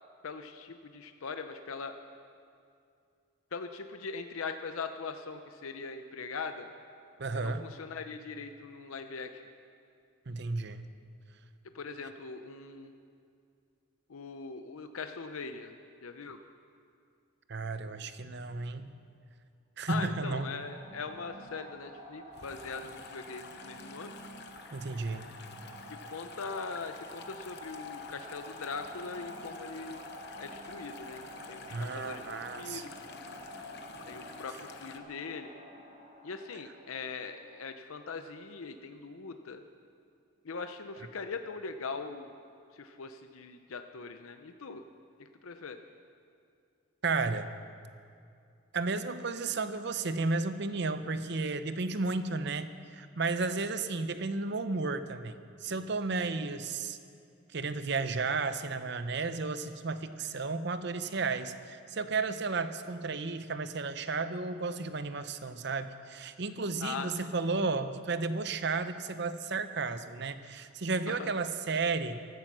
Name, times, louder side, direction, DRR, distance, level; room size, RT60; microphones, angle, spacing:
voice 1, 0.2-1.9 3.5-6.7 7.3-9.4 11.7-12.9 14.1-15.7 16.0-16.4 19.9-24.1 25.9-30.0 30.4-33.2 34.1-35.5 36.2-39.6 40.4-42.3 42.7-44.8 45.2-45.8 66.8-67.1 71.1-71.3, left 4 dB, 80° left, 7 dB, 0.7 m, -41 dB
voice 2, 7.2-7.7 10.3-10.9 17.5-18.9 19.8-20.5 24.7-25.3 31.7-32.8 47.0-47.5 48.7-55.3 55.6-57.0 57.5-72.2, right 3 dB, 55° right, 11 dB, 0.7 m, -33 dB
sound 1, 20.0-37.7, left 1 dB, 35° right, 2.8 m, -48 dB
sound 2, 22.3-35.0, left 5 dB, 50° left, 0.9 m, -51 dB
15.5 x 13.5 x 6.1 m, 2.4 s
head